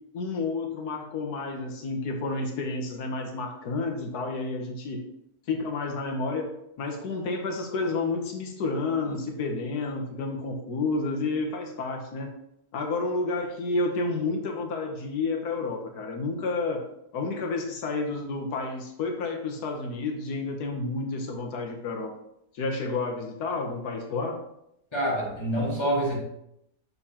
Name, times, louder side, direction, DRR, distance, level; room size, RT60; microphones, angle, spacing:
voice 1, 0.1-5.0 5.5-6.5 6.8-12.3 12.7-16.8 17.1-22.1 22.5-24.4, left 3 dB, 85° left, 2 dB, 1.5 m, -30 dB
voice 2, 24.9-26.2, right 1 dB, 20° left, -3 dB, 1.8 m, -26 dB
6.8 x 6.7 x 2.9 m, 0.80 s
omnidirectional pair, 1.6 m